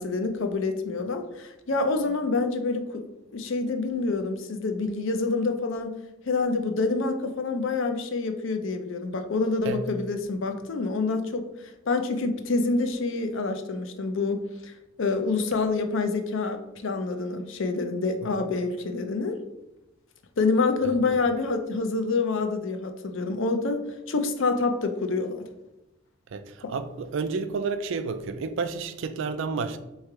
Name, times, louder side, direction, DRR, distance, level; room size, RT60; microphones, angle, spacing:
voice 1, 0.0-3.1 3.3-5.9 6.3-11.4 11.9-14.7 15.0-19.4 20.4-25.4, left 3 dB, 60° left, 0.5 m, -27 dB
voice 2, 26.3-29.8, right 4 dB, 60° right, 0.4 m, -30 dB
3.6 x 3.2 x 4.5 m
head